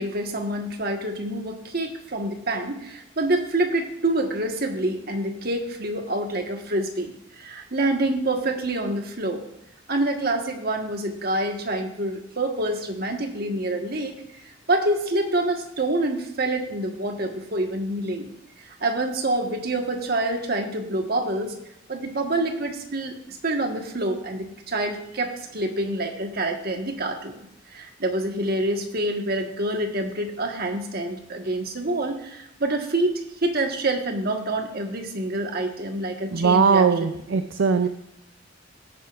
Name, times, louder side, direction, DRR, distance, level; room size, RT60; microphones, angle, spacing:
voice 1, 0.0-9.5 9.9-14.1 14.7-18.3 18.8-21.6 21.9-23.1 23.4-27.4 27.7-33.1 33.4-37.2, right 1 dB, 50° right, 4 dB, 1.5 m, -27 dB
voice 2, 36.3-37.9, right 5 dB, 65° right, 9 dB, 0.5 m, -20 dB
17.0 x 9.4 x 2.5 m, 0.79 s
head